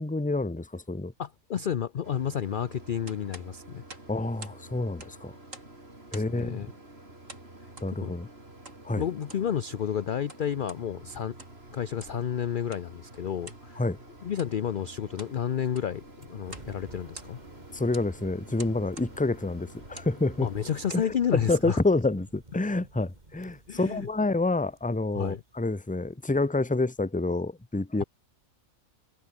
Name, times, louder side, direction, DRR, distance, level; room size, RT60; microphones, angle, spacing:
voice 1, 0.0-1.1 4.1-5.4 6.1-6.7 7.8-8.3 8.8-9.0 13.8-14.0 17.7-20.5 20.9-28.0, left 2 dB, 5° left, 0.9 m, -28 dB
voice 2, 1.2-3.8 6.1-6.7 7.9-8.1 9.0-11.4 11.7-13.8 14.2-17.4 20.4-21.8 23.7-24.1 25.1-25.4, left 8 dB, 50° left, 0.6 m, -31 dB
Mechanisms, 2.0-21.0, right 1 dB, 50° right, 6.2 m, -49 dB
sound 1, 3.1-4.6 4.9-5.8 6.1-6.5 7.3-7.9 8.6-8.8 9.2-9.5 10.1-10.8 11.3-11.6 12.0-12.2 12.7-12.9 13.4-13.7 14.3-14.6 15.0-15.4 15.7-16.0 16.5-16.7 17.0-17.6 17.9-18.1 18.6-19.1 19.8-20.2 20.7-21.1, right 2 dB, 70° right, 5.6 m, -47 dB
sound 2, 16.2-26.2, right 2 dB, 30° right, 3.6 m, -53 dB
omnidirectional pair, 1.4 m